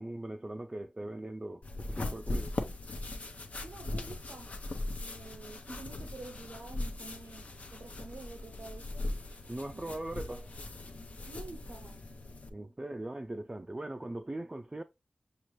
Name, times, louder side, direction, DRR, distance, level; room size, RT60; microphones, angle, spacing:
voice 1, 0.0-2.5 9.5-10.5 12.5-14.8, right 1 dB, 25° right, 0.3 m, -40 dB
sound 1, 1.6-12.5, left 2 dB, 65° left, 0.7 m, -39 dB
voice 2, 3.6-4.5 5.0-9.1 9.7-9.9 11.3-12.2, right 3 dB, 85° right, 0.6 m, -49 dB
5.8 x 2.4 x 3.1 m
wide cardioid pair, 65°, 3 cm